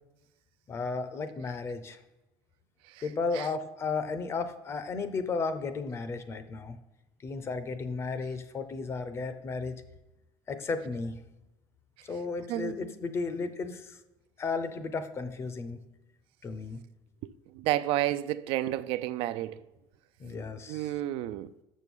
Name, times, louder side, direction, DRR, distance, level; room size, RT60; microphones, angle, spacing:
voice 1, 0.7-2.0 3.0-6.8 7.2-9.8 10.5-11.2 12.0-14.0 14.4-15.8 16.4-16.8 20.2-20.9, left 4 dB, 25° left, 0.6 m, -34 dB
voice 2, 12.5-12.9 17.6-19.6 20.7-21.5, right 14 dB, 70° right, 0.4 m, -30 dB
6.6 x 6.2 x 5.4 m
cardioid pair, 150°, 10 cm